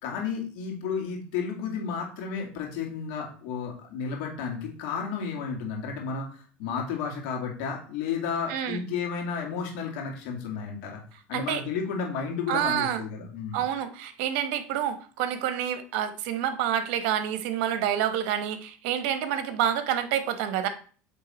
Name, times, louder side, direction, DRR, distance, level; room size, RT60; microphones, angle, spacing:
voice 1, 0.0-11.0 11.3-13.6, left 6 dB, 75° left, 0 dB, 2.2 m, -32 dB
voice 2, 8.5-8.8 11.3-11.6 12.5-13.0 13.5-20.7, right 10 dB, 75° right, 10 dB, 1.0 m, -28 dB
8.3 x 3.4 x 4.2 m, 0.41 s
supercardioid pair, 100°, 6 cm